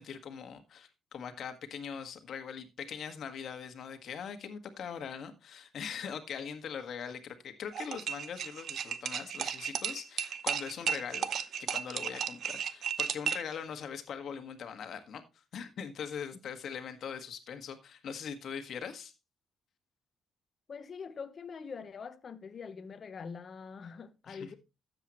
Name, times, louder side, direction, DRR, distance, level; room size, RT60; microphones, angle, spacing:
voice 1, 0.0-15.2 15.5-19.1 24.3-24.6, left 7 dB, 65° left, 1.6 m, -41 dB
sound 1, 7.7-13.5, right 8 dB, 65° right, 0.8 m, -34 dB
voice 2, 20.7-24.6, left 5 dB, 45° left, 1.0 m, -44 dB
12.5 x 7.9 x 3.0 m
cardioid pair, 90°, 0 cm